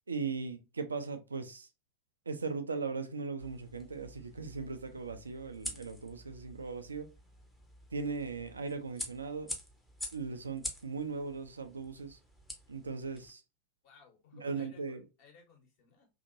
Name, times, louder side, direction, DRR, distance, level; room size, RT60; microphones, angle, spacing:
voice 1, 0.1-1.7 2.3-7.1 7.9-9.5 10.1-12.2 12.7-13.4 14.3-15.0, right 4 dB, 75° right, 0.5 m, -38 dB
sound 1, 3.4-13.3, left 1 dB, 5° left, 0.8 m, -47 dB
voice 2, 13.8-16.1, left 5 dB, 45° left, 1.2 m, -60 dB
2.8 x 2.8 x 2.5 m
figure-of-eight pair, 90°, 0 cm